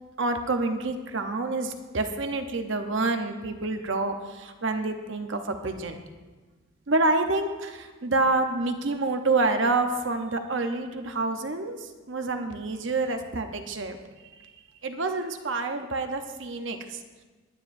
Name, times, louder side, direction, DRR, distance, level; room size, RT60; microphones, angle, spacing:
voice 1, 0.2-6.0 6.9-14.0 14.4-14.5 14.8-17.0, right 3 dB, 60° right, 6 dB, 0.8 m, -28 dB
23.0 x 9.4 x 2.6 m, 1.3 s
head